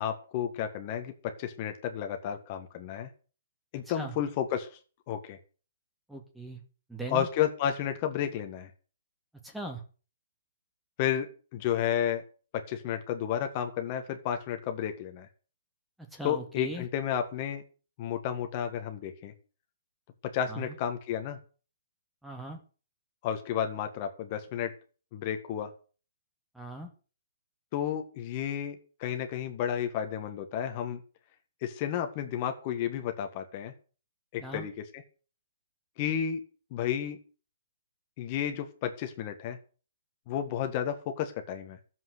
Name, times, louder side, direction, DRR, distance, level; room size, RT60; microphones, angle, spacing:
voice 1, 0.0-3.1 3.7-4.7 5.1-5.4 7.1-8.7 11.0-12.2 12.5-15.3 16.2-17.6 18.0-19.3 20.3-21.4 23.2-24.7 25.1-25.7 27.7-31.0 31.6-33.7 34.3-34.7 36.0-36.4 36.7-37.2 38.2-39.6 40.3-41.8, left 9 dB, 30° left, 6 dB, 1.7 m, -32 dB
voice 2, 6.1-6.6 6.9-7.3 9.4-9.8 16.0-16.9 20.5-20.8 22.2-22.6 26.5-26.9 34.4-34.7, right 1 dB, ahead, 3 dB, 2.1 m, -39 dB
13.0 x 7.8 x 8.0 m, 0.38 s
hypercardioid pair, 160°, 0 cm